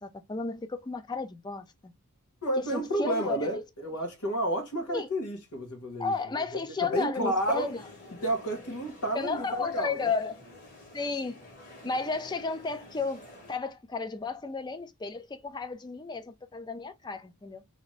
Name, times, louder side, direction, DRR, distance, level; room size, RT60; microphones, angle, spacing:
voice 1, 0.0-1.9 2.6-3.6 4.9-5.1 6.0-7.8 9.1-10.4 10.9-11.4 11.8-13.2 13.5-17.6, left 4 dB, 20° left, 0.3 m, -33 dB
voice 2, 2.4-6.1 6.8-7.7 8.2-10.1, right 1 dB, 90° left, 1.2 m, -31 dB
sound 1, 7.3-13.6, left 2 dB, 35° left, 1.5 m, -50 dB
2.9 x 2.5 x 2.9 m
head